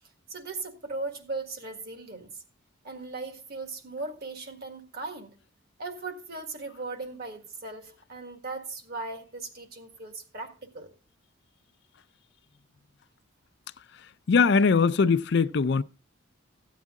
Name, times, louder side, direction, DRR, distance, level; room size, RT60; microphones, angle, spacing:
voice 1, 0.3-2.3 2.8-5.3 5.8-10.9, right 3 dB, 55° right, 1.7 m, -38 dB
voice 2, 14.3-15.8, left 5 dB, 60° left, 0.5 m, -21 dB
14.0 x 8.4 x 3.7 m
head